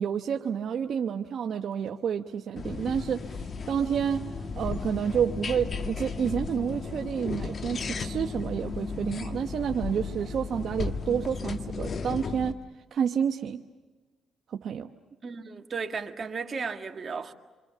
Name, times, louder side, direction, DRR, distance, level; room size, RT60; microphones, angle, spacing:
voice 1, 0.0-3.4 3.7-4.3 4.6-12.6 12.9-13.6 14.5-14.9, right 7 dB, 65° right, 1.0 m, -29 dB
sound 1, 2.6-12.5, left 4 dB, 45° left, 1.2 m, -35 dB
voice 2, 15.2-17.3, right 5 dB, 40° right, 1.8 m, -34 dB
28.0 x 25.0 x 6.8 m
cardioid pair, 90°, 0 cm